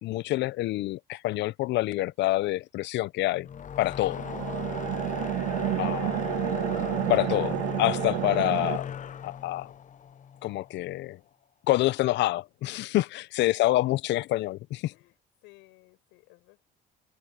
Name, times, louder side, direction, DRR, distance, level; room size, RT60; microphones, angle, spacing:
voice 1, 0.0-3.5 3.8-4.2 5.8-6.2 7.1-9.0 9.2-9.7 10.4-11.2 11.7-14.9, left 17 dB, 70° left, 0.6 m, -27 dB
sound 1, 3.4-10.8, left 8 dB, 40° left, 0.9 m, -37 dB
sound 2, 4.1-8.8, right 20 dB, 90° right, 1.6 m, -30 dB
voice 2, 14.9-16.7, left 23 dB, 85° left, 7.0 m, -58 dB
supercardioid pair, 80°, 19 cm